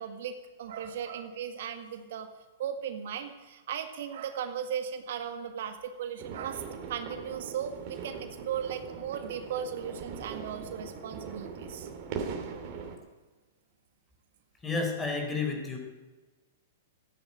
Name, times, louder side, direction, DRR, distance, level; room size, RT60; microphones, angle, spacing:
voice 1, 0.0-2.3 2.6-6.6 6.9-11.9, right 8 dB, 65° right, 7 dB, 1.7 m, -37 dB
sound 1, 6.2-13.0, right 6 dB, 45° right, 2.9 m, -40 dB
voice 2, 14.6-15.8, left 4 dB, 15° left, 2 dB, 4.2 m, -31 dB
14.5 x 10.0 x 8.8 m, 1.2 s
hypercardioid pair, 125°, 0 cm